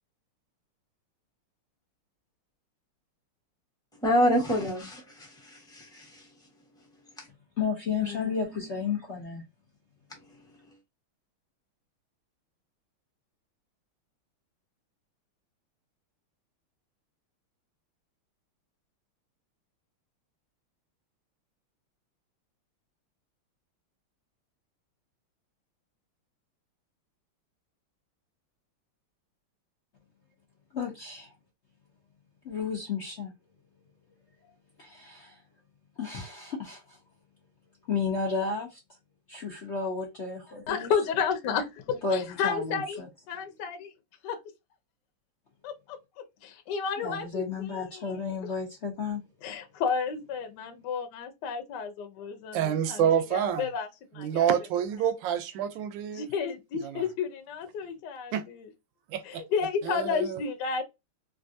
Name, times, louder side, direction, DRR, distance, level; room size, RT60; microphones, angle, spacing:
voice 1, 4.0-6.2 8.0-8.2, equal, 5° left, 0.6 m, -27 dB
voice 2, 7.6-9.4 30.7-31.3 32.4-33.3 34.8-35.4 36.0-37.0 37.9-38.8 39.3-40.9 42.0-43.1 47.0-49.3, left 5 dB, 90° left, 0.6 m, -32 dB
voice 3, 40.7-43.0 43.3-43.9 44.2-44.4 45.6-46.0 46.4-48.3 49.4-53.0 53.3-53.9 54.1-54.5 56.1-58.3 59.3-60.8, left 6 dB, 65° left, 1.1 m, -32 dB
voice 4, 52.5-53.7 54.2-56.2 56.8-57.0 58.3-58.4 59.1-59.4 59.8-60.4, right 9 dB, 75° right, 1.2 m, -28 dB
3.3 x 2.5 x 2.6 m
omnidirectional pair, 2.4 m